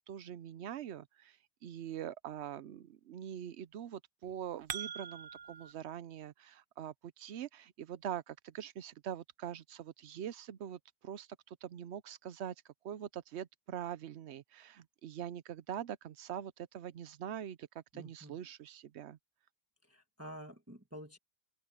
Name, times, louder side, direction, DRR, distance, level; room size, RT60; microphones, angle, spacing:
voice 1, 0.0-1.4 1.6-12.5 12.8-19.2, right 10 dB, 80° right, 1.0 m, -43 dB
sound 1, 4.2-5.7, right 8 dB, 55° right, 0.9 m, -43 dB
voice 2, 17.9-18.4 19.9-21.2, equal, 15° right, 1.4 m, -49 dB
omnidirectional pair, 1.1 m